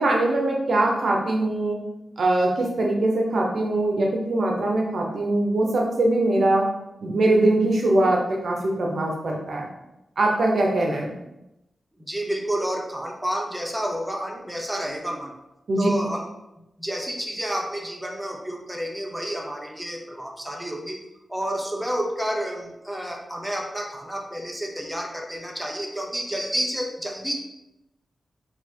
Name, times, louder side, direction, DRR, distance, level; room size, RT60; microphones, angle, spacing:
voice 1, 0.0-1.8 2.2-6.7 7.0-9.7 10.2-11.1 15.7-15.9, right 2 dB, 70° right, 0 dB, 0.9 m, -22 dB
voice 2, 12.0-15.3 15.8-16.3 16.8-21.0 21.3-27.4, equal, 5° right, 0 dB, 0.8 m, -30 dB
3.8 x 2.9 x 4.6 m, 0.91 s
cardioid pair, 70°, 0 cm